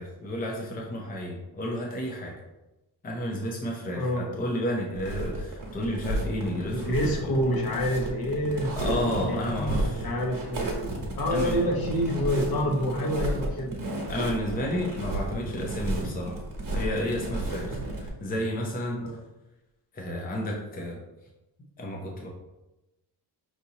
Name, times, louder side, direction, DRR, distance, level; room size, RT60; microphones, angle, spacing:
voice 1, 0.0-2.3 3.0-7.3 8.8-10.1 11.3-11.7 14.1-19.0 19.9-21.0 21.8-22.3, equal, 20° left, -1 dB, 0.6 m, -32 dB
voice 2, 4.0-4.3 6.7-8.8 9.3-10.7 11.2-13.8 18.9-19.1, equal, 60° left, -1 dB, 0.9 m, -27 dB
sound 1, 4.9-18.1, right 1 dB, 50° right, 1.2 m, -32 dB
5.9 x 2.7 x 2.7 m, 0.99 s
wide cardioid pair, 170°, 41 cm